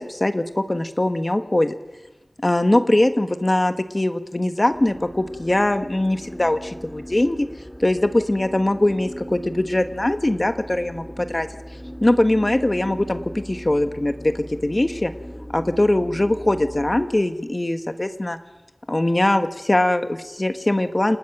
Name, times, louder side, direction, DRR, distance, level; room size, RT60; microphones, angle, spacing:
voice 1, 0.0-1.7 2.4-7.5 7.8-11.5 12.0-15.1 15.5-18.4 18.9-21.2, left 1 dB, 40° left, 8 dB, 1.3 m, -21 dB
sound 1, 4.7-17.1, equal, 15° left, 3.5 m, -38 dB
28.5 x 20.0 x 6.0 m, 1.1 s
wide cardioid pair, 55°, 0 cm